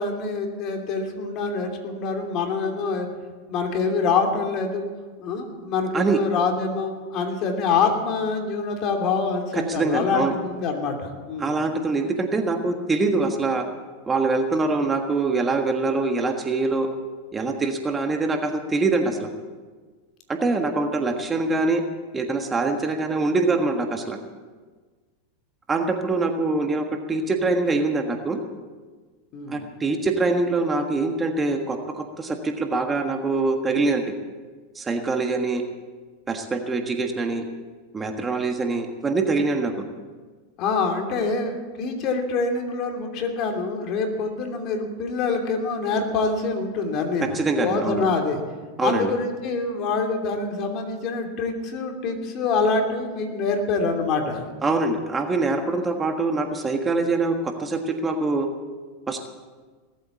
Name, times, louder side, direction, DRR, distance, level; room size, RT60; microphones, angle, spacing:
voice 1, 0.0-3.1 3.5-4.9 5.2-11.6 29.3-29.6 40.6-48.4 48.8-54.5, left 4 dB, 45° left, 3 dB, 2.9 m, -25 dB
voice 2, 9.7-10.3 11.4-13.6 14.0-16.9 17.3-19.3 20.3-21.8 22.1-24.2 25.7-28.4 29.5-34.0 34.8-35.6 36.3-37.4 37.9-39.8 47.3-48.0 48.8-49.1 54.6-58.5 59.1-59.3, right 3 dB, 20° right, 4 dB, 1.6 m, -24 dB
19.0 x 8.4 x 8.5 m, 1.4 s
hypercardioid pair, 105°, 0 cm